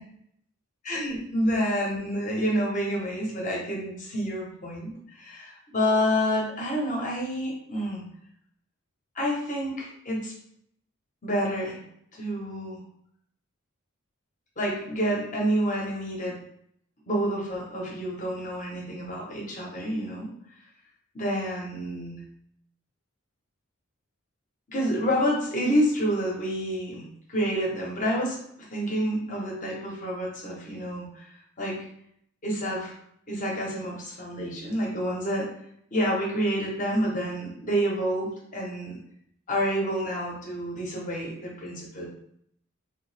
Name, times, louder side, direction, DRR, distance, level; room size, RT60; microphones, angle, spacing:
voice 1, 0.9-8.0 9.2-10.3 11.2-11.8 12.1-12.8 14.6-16.3 17.1-20.3 21.1-22.2 24.7-28.4 28.7-31.3 31.6-31.8 32.4-32.9 33.3-35.5 35.9-39.0 39.5-42.1, equal, 35° left, -2 dB, 1.1 m, -28 dB
3.5 x 2.8 x 3.4 m, 0.70 s
head